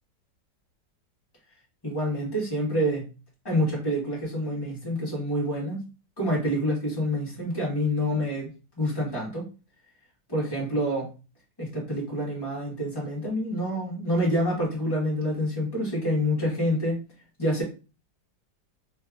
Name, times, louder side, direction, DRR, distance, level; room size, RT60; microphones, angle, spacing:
voice 1, 1.8-3.0 3.4-5.8 6.2-8.5 8.8-9.4 10.3-11.1 11.6-17.0 17.4-17.6, equal, 15° left, -5 dB, 1.2 m, -27 dB
3.4 x 3.2 x 2.4 m, 0.32 s
omnidirectional pair, 1.9 m